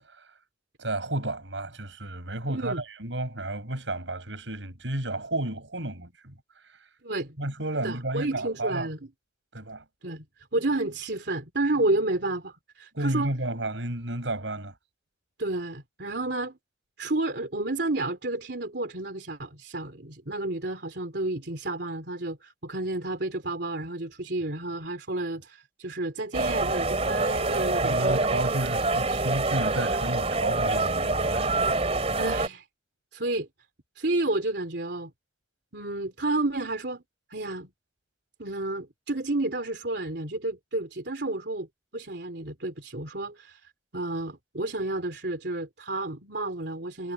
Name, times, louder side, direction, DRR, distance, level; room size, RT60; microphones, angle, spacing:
voice 1, 0.8-6.3 6.7-6.8 7.4-8.9 9.5-9.8 12.9-14.7 27.8-31.5, right 1 dB, 90° right, 6.0 m, -32 dB
voice 2, 2.5-2.8 7.0-7.4 7.8-9.0 10.0-10.2 10.5-13.3 15.4-16.6 17.0-28.2 32.1-32.6 33.1-33.5 33.9-35.1 35.7-37.0 37.3-37.7 38.4-41.7 41.9-47.1, right 2 dB, 65° right, 3.1 m, -31 dB
sound 1, 26.3-32.5, right 2 dB, 35° right, 2.8 m, -26 dB
head